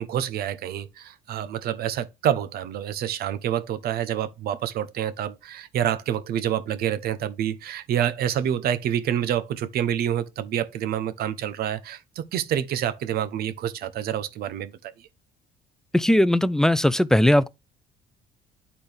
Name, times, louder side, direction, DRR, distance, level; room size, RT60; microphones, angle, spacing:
voice 1, 0.0-15.1, right 10 dB, 65° right, 0.8 m, -27 dB
voice 2, 15.9-17.5, left 1 dB, 5° left, 0.3 m, -19 dB
10.0 x 4.3 x 3.4 m
cardioid pair, 110°, 17 cm